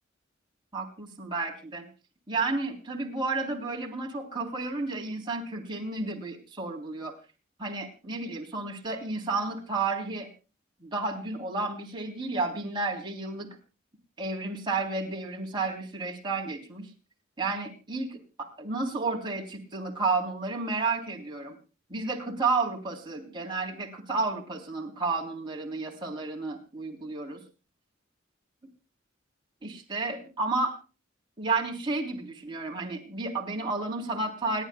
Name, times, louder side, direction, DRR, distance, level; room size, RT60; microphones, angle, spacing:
voice 1, 0.7-1.9 2.3-7.1 7.6-10.3 10.8-13.6 14.2-16.9 17.4-21.6 21.9-27.4 29.6-30.7 31.4-34.6, right 3 dB, 25° right, 0 dB, 3.4 m, -31 dB
29.0 x 10.5 x 2.3 m, 0.32 s
head